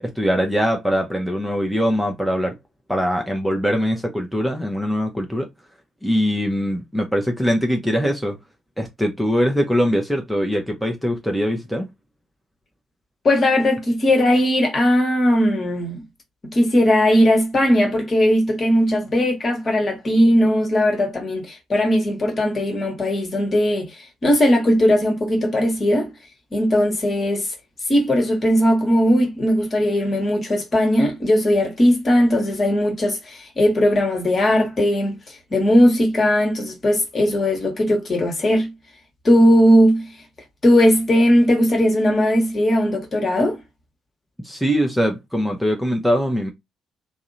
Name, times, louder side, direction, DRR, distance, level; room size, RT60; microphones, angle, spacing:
voice 1, 0.0-2.5 2.9-5.5 6.0-8.4 8.8-11.9 44.4-46.5, equal, ahead, 0.6 m, -22 dB
voice 2, 13.2-16.0 16.4-23.9 24.2-26.1 26.5-27.5 27.9-35.2 35.5-38.7 39.2-40.1 40.6-43.6, equal, 40° left, 1.1 m, -18 dB
2.7 x 2.1 x 2.6 m
figure-of-eight pair, 45°, 0 cm